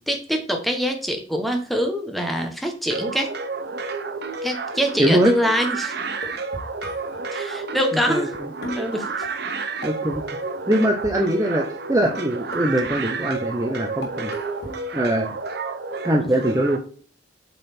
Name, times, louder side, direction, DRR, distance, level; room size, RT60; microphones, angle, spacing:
voice 1, 0.1-3.3 4.4-5.9 7.3-8.3 8.8-9.1, equal, ahead, 4 dB, 1.1 m, -24 dB
sound 1, 2.9-16.8, right 4 dB, 55° right, 0.9 m, -31 dB
voice 2, 5.0-5.3 8.1-8.5 9.8-10.2 10.7-14.3 14.9-15.4 16.0-16.8, right 1 dB, 15° right, 1 dB, 0.8 m, -22 dB
sound 2, 6.1-7.4 8.3-8.4 8.6-11.4 11.9-12.2 12.5-13.5 14.0-15.1, left 1 dB, 55° left, 2.1 m, -38 dB
8.3 x 4.1 x 4.4 m, 0.42 s
head